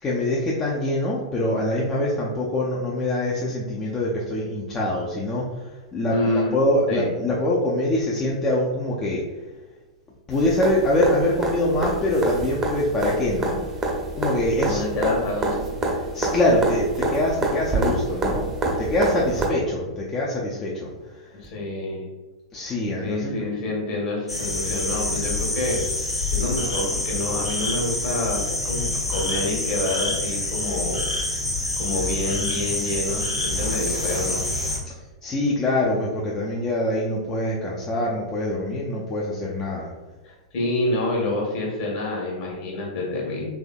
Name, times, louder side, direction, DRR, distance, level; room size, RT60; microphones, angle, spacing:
voice 1, 0.0-9.2 10.3-13.6 14.2-14.8 16.1-18.5 18.8-21.4 22.5-23.3 34.9-35.0 35.2-39.9, left 1 dB, 20° left, -5 dB, 0.5 m, -24 dB
voice 2, 6.1-6.6 6.9-7.1 14.6-15.7 19.3-19.5 21.4-22.0 22.6-22.7 23.0-31.1 31.8-34.5 40.2-43.5, left 2 dB, 45° left, -2 dB, 1.3 m, -27 dB
sound 1, 10.3-19.5 21.4-21.5, right 2 dB, 20° right, 0.7 m, -27 dB
sound 2, 24.3-34.8, left 2 dB, 85° left, 0.8 m, -27 dB
3.4 x 3.4 x 2.3 m, 1.2 s
figure-of-eight pair, 100°, 3 cm